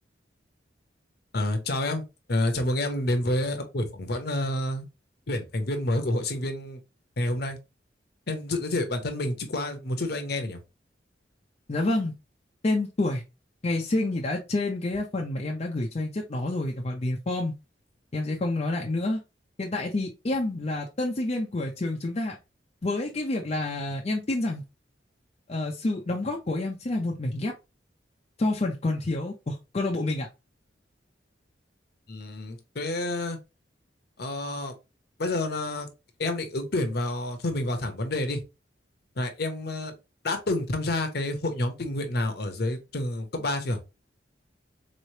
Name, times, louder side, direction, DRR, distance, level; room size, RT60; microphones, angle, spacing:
voice 1, 1.3-2.0 2.3-4.9 5.3-6.8 7.2-7.6 8.3-10.6 32.1-33.4 34.2-34.7 35.2-35.9 36.2-38.4 39.2-39.9 40.2-43.8, left 1 dB, 60° left, 0.8 m, -29 dB
voice 2, 11.7-12.1 12.6-13.2 13.6-17.5 18.1-19.2 19.6-22.4 22.8-24.6 25.5-27.5 28.4-30.3, left 2 dB, 35° left, 0.5 m, -28 dB
4.0 x 3.2 x 2.8 m
head